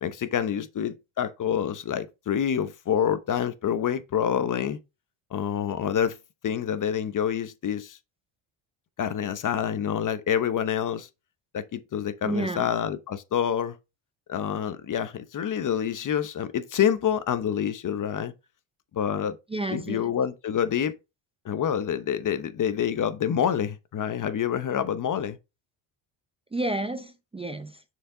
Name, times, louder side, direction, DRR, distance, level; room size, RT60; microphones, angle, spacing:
voice 1, 0.0-4.8 5.3-6.2 6.4-8.0 9.0-11.1 11.5-13.8 14.3-18.3 18.9-19.4 19.7-20.9 21.4-25.4, left 9 dB, 40° left, 0.9 m, -27 dB
voice 2, 12.2-12.7 19.5-20.1 26.5-27.8, right 2 dB, 10° right, 0.6 m, -31 dB
6.4 x 4.6 x 3.8 m
cardioid pair, 100°, 50 cm